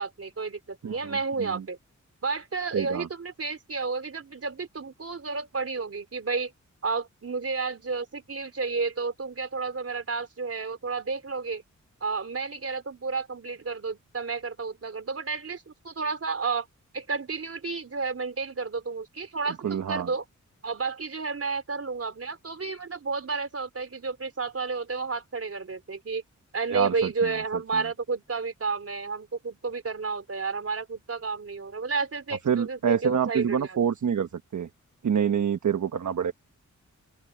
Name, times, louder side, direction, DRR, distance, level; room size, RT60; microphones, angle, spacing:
voice 1, 0.0-1.8 2.2-6.5 6.8-11.6 12.0-16.7 16.9-20.2 20.6-26.2 26.5-33.8, right 4 dB, 50° right, 3.6 m, -31 dB
voice 2, 0.8-1.6 2.7-3.1 19.5-20.1 26.7-27.1 27.7-27.8 32.5-34.7 35.0-36.3, right 8 dB, 70° right, 1.2 m, -27 dB
open air
wide cardioid pair, 90°, 30 cm